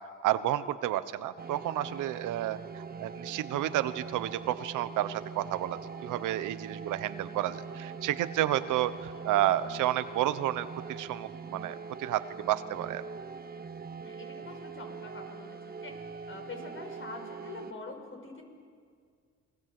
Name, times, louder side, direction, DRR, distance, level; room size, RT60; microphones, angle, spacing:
voice 1, 0.2-13.0, right 13 dB, 90° right, 13 dB, 1.1 m, -31 dB
sound 1, 1.4-17.7, right 5 dB, 30° right, 1.2 m, -42 dB
voice 2, 14.0-15.9 16.3-18.4, left 3 dB, 45° left, 3 dB, 6.3 m, -45 dB
29.0 x 23.0 x 7.8 m, 2.1 s
cardioid pair, 90°, 30 cm